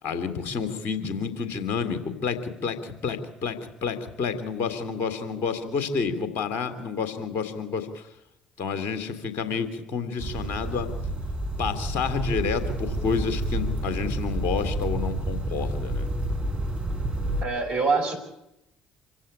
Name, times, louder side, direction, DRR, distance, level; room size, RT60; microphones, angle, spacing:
voice 1, 0.0-8.1 8.6-10.9 11.6-16.1, left 5 dB, 60° left, 10 dB, 3.4 m, -29 dB
sound 1, 10.2-17.4, right 1 dB, 30° right, 5.2 m, -29 dB
voice 2, 17.4-18.2, right 4 dB, 60° right, 4 dB, 6.1 m, -24 dB
26.5 x 15.5 x 9.1 m, 0.87 s
figure-of-eight pair, 50°, 4 cm